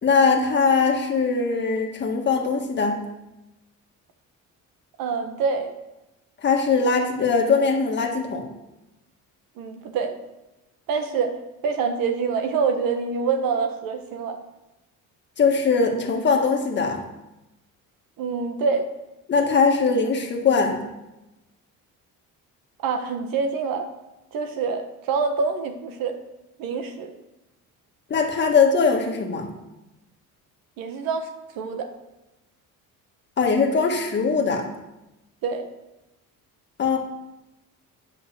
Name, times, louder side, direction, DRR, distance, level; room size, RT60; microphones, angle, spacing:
voice 1, 0.0-3.0 6.4-8.5 15.4-17.0 19.3-20.8 28.1-29.5 33.4-34.7 36.8-37.0, left 5 dB, 30° left, 1 dB, 1.6 m, -21 dB
voice 2, 5.0-5.7 9.6-10.1 10.9-11.3 11.6-14.4 18.2-18.9 22.8-23.9 24.3-26.2 26.6-27.1 30.8-31.3 31.5-31.9 35.4-35.7, right 5 dB, 80° right, 7 dB, 1.4 m, -26 dB
10.5 x 5.6 x 6.7 m, 0.98 s
cardioid pair, 155°, 34 cm